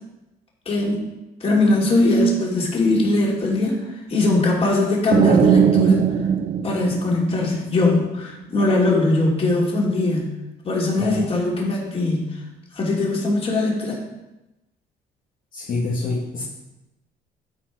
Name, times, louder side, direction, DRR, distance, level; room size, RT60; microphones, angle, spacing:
voice 1, 0.7-1.0 1.4-6.0 6.6-10.3 10.6-12.3 12.7-14.0, left 2 dB, 35° left, -3 dB, 2.9 m, -20 dB
sound 1, 5.1-7.9, right 7 dB, 40° right, 0.5 m, -19 dB
voice 2, 15.5-16.4, left 2 dB, 55° left, -4 dB, 1.6 m, -26 dB
12.5 x 4.7 x 4.8 m, 0.99 s
cardioid pair, 110°, 17 cm